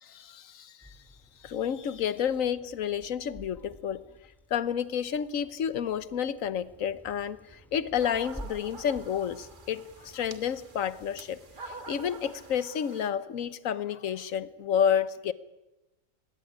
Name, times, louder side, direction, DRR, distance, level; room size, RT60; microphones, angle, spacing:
voice 1, 0.0-1.0 1.4-4.0 4.5-15.3, left 8 dB, 65° left, 1.3 m, -30 dB
sound 1, 0.8-12.7, right 1 dB, ahead, 2.0 m, -52 dB
sound 2, 8.0-13.1, right 4 dB, 35° right, 1.4 m, -46 dB
20.0 x 17.0 x 10.0 m
omnidirectional pair, 1.6 m